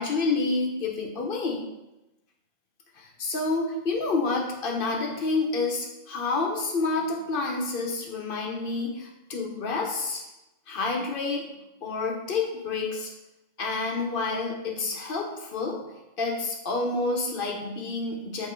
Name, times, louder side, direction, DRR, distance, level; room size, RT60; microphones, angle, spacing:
voice 1, 0.0-1.7 3.0-10.2 10.7-11.5 11.8-13.1 13.6-15.8 16.2-18.5, left 3 dB, 50° left, 1 dB, 0.7 m, -29 dB
4.0 x 2.9 x 4.4 m, 0.97 s
omnidirectional pair, 1.4 m